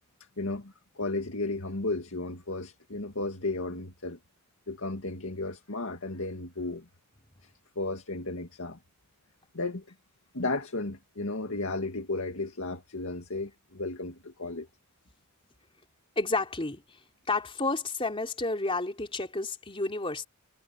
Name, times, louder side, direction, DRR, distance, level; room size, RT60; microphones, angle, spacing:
voice 1, 0.4-4.2 4.7-6.9 7.8-8.8 9.5-9.8 10.3-14.7, left 2 dB, 65° left, 2.1 m, -34 dB
voice 2, 16.1-17.0 17.3-20.2, left 3 dB, 25° left, 3.3 m, -31 dB
head